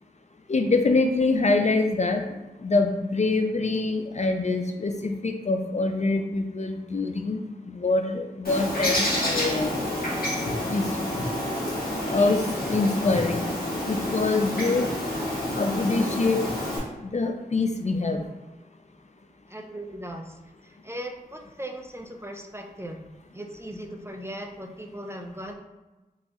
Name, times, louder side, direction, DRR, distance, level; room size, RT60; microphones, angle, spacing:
voice 1, 0.5-2.2 2.6-7.4 7.7-9.8 10.4-10.8 12.1-13.5 13.9-14.9 15.5-16.4 17.0-18.2, left 3 dB, 45° left, 5 dB, 0.4 m, -25 dB
Bird, 8.4-16.8, left 1 dB, 70° left, 1.1 m, -28 dB
voice 2, 19.5-20.4 20.6-23.0 23.3-25.5, right 1 dB, 15° right, 2 dB, 0.4 m, -38 dB
4.0 x 2.8 x 2.4 m, 1.1 s
wide cardioid pair, 40°, 16 cm